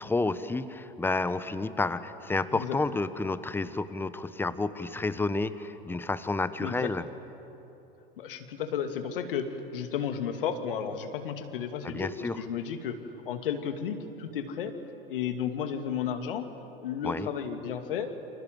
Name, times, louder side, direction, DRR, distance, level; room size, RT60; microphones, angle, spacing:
voice 1, 0.0-7.0 11.8-12.4 17.0-17.3, left 3 dB, 5° left, 13 dB, 1.1 m, -30 dB
voice 2, 6.6-6.9 8.2-13.0 13.3-14.7 15.1-16.5 16.8-18.1, left 8 dB, 65° left, 7 dB, 2.4 m, -33 dB
28.5 x 27.0 x 7.7 m, 3.0 s
figure-of-eight pair, 85°, 29 cm